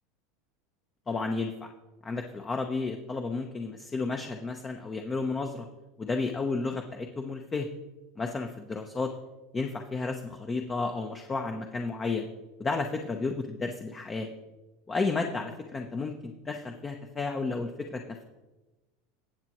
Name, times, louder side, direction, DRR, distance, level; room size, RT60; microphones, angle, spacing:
voice 1, 1.1-1.7 2.0-5.7 6.0-7.7 8.2-9.1 9.5-12.3 12.6-14.3 14.9-18.2, left 3 dB, 20° left, 4 dB, 0.7 m, -32 dB
19.0 x 7.3 x 3.0 m, 1.1 s
supercardioid pair, 130°, 0 cm